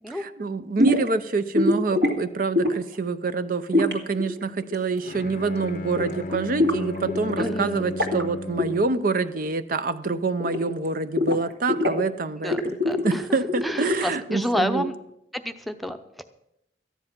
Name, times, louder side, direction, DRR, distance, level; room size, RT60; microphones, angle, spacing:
voice 1, 0.1-12.8 13.0-14.9, right 4 dB, 50° right, 11 dB, 0.6 m, -26 dB
sound 1, 0.8-1.1 1.5-2.2 2.5-2.9 3.7-5.2 5.5-5.7 6.0-7.5 7.8-8.2 8.6-9.5 9.7-10.9 11.2-12.0 12.4-14.2, left 2 dB, 70° right, 2.3 m, -24 dB
Bowed string instrument, 5.0-9.1, left 1 dB, 50° left, 0.6 m, -35 dB
voice 2, 7.4-7.9 12.4-13.2 13.6-14.9 15.3-16.2, equal, ahead, 7 dB, 0.7 m, -29 dB
14.0 x 10.5 x 6.0 m, 0.78 s
head